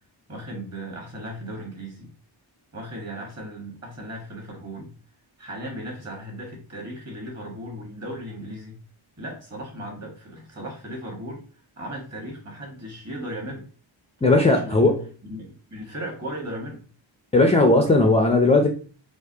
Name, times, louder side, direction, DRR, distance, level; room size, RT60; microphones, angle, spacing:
voice 1, 0.3-2.1 2.7-4.9 5.4-8.8 9.2-11.4 11.8-13.7 14.3-14.9 15.2-16.8, equal, 35° right, 1.4 m, -36 dB
voice 2, 14.2-15.0 17.3-18.7, left 2 dB, 15° left, 0.3 m, -17 dB
4.6 x 2.4 x 2.7 m
wide cardioid pair, 135°, 46 cm